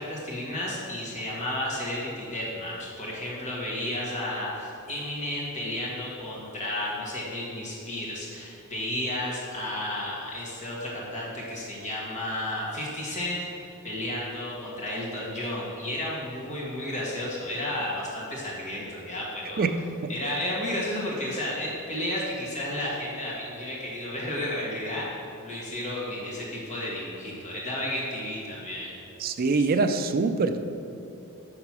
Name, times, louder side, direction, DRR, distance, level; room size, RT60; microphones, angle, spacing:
voice 1, 0.0-13.4 13.8-19.6 20.1-25.1 25.4-28.9, left 1 dB, 35° left, -5 dB, 1.5 m, -32 dB
voice 2, 29.2-30.6, right 4 dB, 40° right, 8 dB, 0.4 m, -24 dB
6.5 x 5.9 x 6.1 m, 2.8 s
head